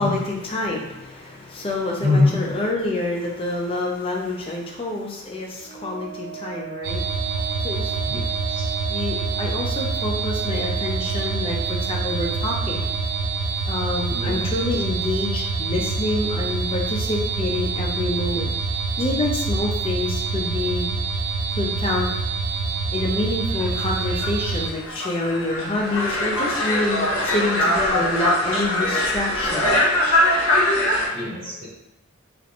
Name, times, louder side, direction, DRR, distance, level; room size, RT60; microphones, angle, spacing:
voice 1, 0.0-7.0 7.6-7.9 8.9-12.9 13.7-18.5 19.0-20.9 21.6-22.1 22.9-29.8 31.4-31.5, left 2 dB, 25° left, -1 dB, 0.4 m, -27 dB
voice 2, 2.0-2.3 8.1-8.2 8.5-8.6 14.1-14.4 31.1-31.6, left 2 dB, 60° right, -10 dB, 1.2 m, -22 dB
Wind instrument woodwind instrument, 5.6-13.5, right 12 dB, 15° right, 0.8 m, -36 dB
sound 1, 6.8-24.7, right 4 dB, 85° right, 0.3 m, -26 dB
sound 2, 23.6-31.1, left 1 dB, 70° left, 0.7 m, -22 dB
2.4 x 2.1 x 2.8 m, 0.89 s
head